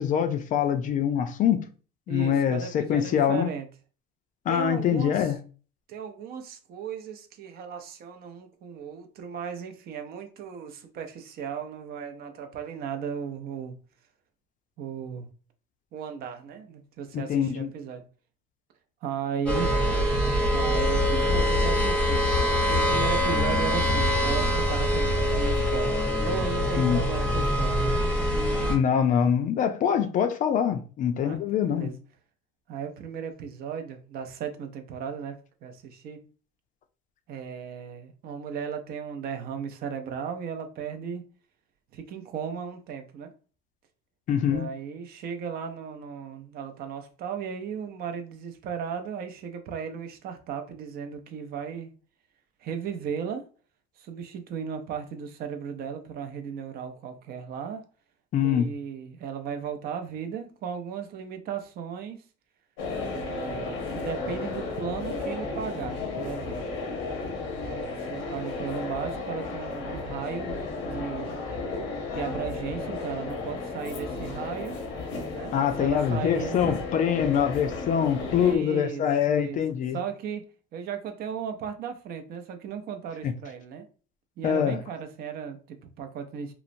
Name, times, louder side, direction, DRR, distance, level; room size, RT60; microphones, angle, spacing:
voice 1, 0.0-1.6 2.1-3.5 4.5-5.4 17.1-17.7 26.8-27.0 28.7-31.9 44.3-44.6 58.3-58.7 75.5-80.0 83.2-83.3 84.4-84.8, left 8 dB, 45° left, 0.4 m, -24 dB
voice 2, 2.1-3.7 4.5-5.3 5.9-13.8 14.8-15.3 15.9-18.0 19.0-19.7 20.5-22.2 22.7-27.8 31.2-32.0 32.7-36.2 37.3-41.2 41.9-43.3 44.4-51.9 52.6-53.5 54.0-57.8 58.4-62.2 63.1-66.6 67.5-71.3 72.1-74.8 75.3-76.6 78.3-79.6 79.9-80.4 80.7-83.9 84.4-86.5, right 7 dB, 55° right, 0.5 m, -36 dB
sound 1, 19.5-28.8, left 1 dB, 5° left, 0.7 m, -24 dB
sound 2, 62.8-78.6, left 3 dB, 90° left, 0.8 m, -34 dB
3.0 x 2.0 x 2.5 m
cardioid pair, 125°, 19 cm